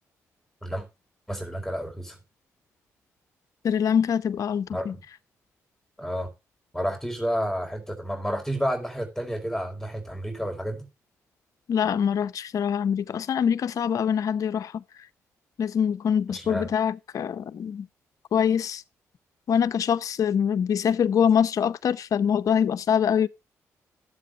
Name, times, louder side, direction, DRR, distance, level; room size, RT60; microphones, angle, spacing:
voice 1, 1.3-2.2 4.7-5.0 6.0-6.3 6.7-10.9 16.3-16.7, equal, 5° left, 4.3 m, -30 dB
voice 2, 3.6-4.9 11.7-14.8 15.6-17.9 18.3-18.8 19.5-23.3, left 8 dB, 65° left, 0.8 m, -24 dB
14.0 x 7.8 x 2.5 m
supercardioid pair, 60°, 6 cm